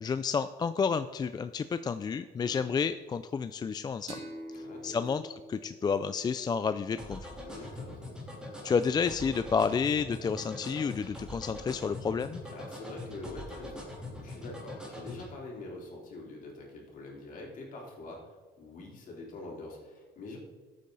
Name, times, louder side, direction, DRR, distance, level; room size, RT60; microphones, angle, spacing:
voice 1, 0.0-4.2 4.6-5.2 5.5-7.3 8.6-12.4, left 6 dB, 25° left, 11 dB, 0.3 m, -30 dB
sound 1, 4.1-7.4, right 1 dB, 40° right, 3.5 m, -47 dB
voice 2, 4.5-5.2 7.4-8.1 12.5-13.9 14.1-20.4, left 2 dB, 55° left, -2 dB, 3.6 m, -45 dB
sound 2, 7.0-15.3, left 1 dB, 5° right, 3.2 m, -42 dB
13.0 x 8.5 x 4.0 m, 1.4 s
cardioid pair, 110°, 17 cm